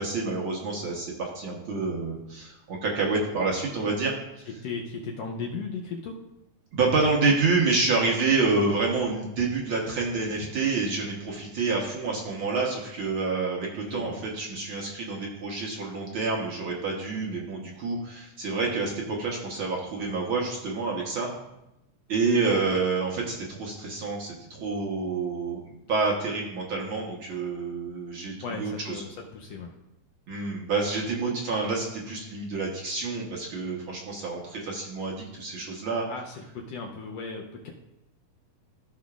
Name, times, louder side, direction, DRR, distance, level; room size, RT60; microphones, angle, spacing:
voice 1, 0.0-4.1 6.7-21.3 22.1-25.6 25.9-29.0 30.3-36.0, right 3 dB, 60° right, -2 dB, 1.4 m, -28 dB
voice 2, 4.6-6.2 7.0-7.4 13.8-14.3 28.4-29.7 36.1-37.7, left 4 dB, 80° left, 1 dB, 1.5 m, -36 dB
14.5 x 5.6 x 2.4 m, 0.88 s
omnidirectional pair, 3.6 m